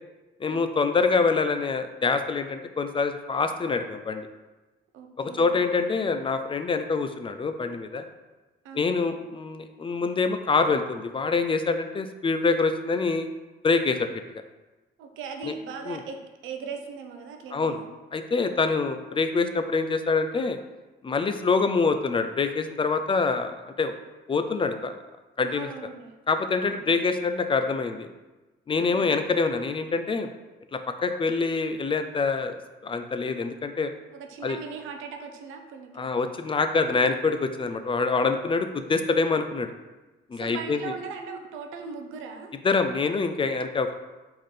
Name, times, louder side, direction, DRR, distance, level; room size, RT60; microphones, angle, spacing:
voice 1, 0.4-4.3 5.2-8.0 8.7-13.3 13.6-14.4 15.4-15.5 15.9-16.0 17.5-17.8 18.1-20.6 21.0-24.0 24.3-24.9 25.4-25.7 26.3-28.1 28.7-30.3 30.7-32.6 32.8-33.9 34.4-34.6 36.0-39.7 40.3-40.9 42.6-43.9, left 4 dB, 25° left, 8 dB, 0.3 m, -25 dB
voice 2, 4.9-5.6 8.6-8.8 15.0-17.9 25.5-26.1 26.6-26.9 28.9-29.1 34.1-36.0 40.3-42.5, right 5 dB, 90° right, 4 dB, 0.6 m, -39 dB
4.4 x 3.7 x 3.2 m, 1.1 s
cardioid pair, 90°, 20 cm